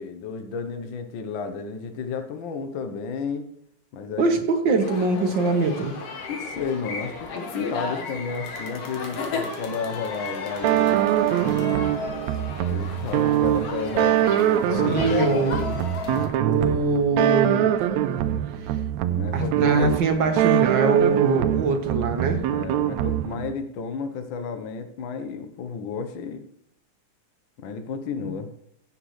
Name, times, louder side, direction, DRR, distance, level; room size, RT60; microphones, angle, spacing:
voice 1, 0.0-3.5 3.9-4.4 6.3-11.0 12.7-15.8 19.1-19.9 22.5-26.4 27.6-28.5, left 5 dB, 75° left, 7 dB, 1.1 m, -32 dB
voice 2, 4.2-6.0 14.8-15.6 16.4-17.7 19.3-22.4 28.2-28.3, right 3 dB, 50° right, 5 dB, 1.5 m, -22 dB
sound 1, 4.8-16.3, left 4 dB, 55° left, 2.4 m, -34 dB
sound 2, 10.6-23.5, right 12 dB, 80° right, 1.8 m, -23 dB
16.0 x 8.0 x 3.2 m, 0.72 s
omnidirectional pair, 3.4 m